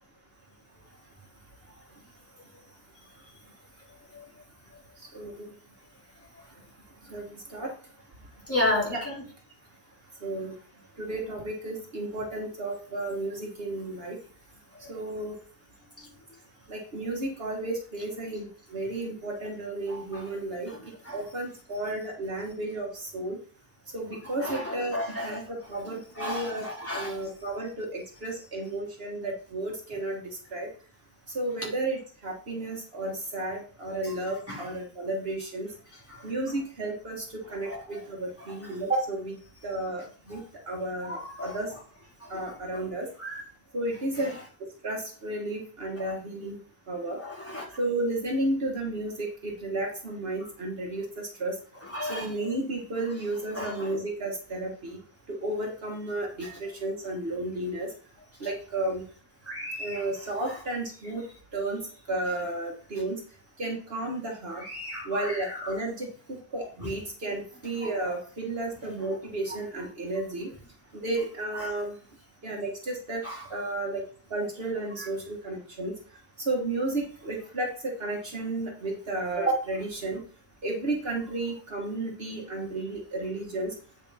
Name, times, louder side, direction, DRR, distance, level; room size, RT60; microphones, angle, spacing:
voice 1, 5.1-5.5 7.1-7.7 8.9-9.0 10.2-10.5 11.0-14.2 14.9-15.4 16.7-20.7 21.1-23.4 23.9-26.7 26.9-30.7 31.3-35.7 36.2-39.4 39.6-41.7 42.3-43.1 43.7-44.3 44.8-46.6 46.9-47.2 47.8-51.6 52.1-55.0 55.3-57.9 58.4-59.0 59.8-61.2 61.5-63.2 63.6-64.6 65.0-70.5 70.9-71.9 72.4-73.2 73.5-74.0 74.3-75.9 76.4-80.2 80.6-83.7, right 2 dB, 65° right, 0 dB, 1.7 m, -32 dB
voice 2, 8.5-9.1 14.8-14.9 19.9-20.2 20.7-20.8 21.0-21.2 24.4-25.4 26.2-27.2 34.5-34.6 36.1-36.2 37.7-37.8 41.0-41.6 42.3-42.5 43.2-43.4 47.2-47.7 51.9-52.3 53.6-53.9 56.4-56.5 59.5-60.0 64.6-65.3 66.8-66.9 73.2-73.4 75.0-75.1, left 1 dB, 15° left, -5 dB, 3.7 m, -33 dB
9.7 x 5.3 x 4.2 m, 0.42 s
omnidirectional pair, 1.1 m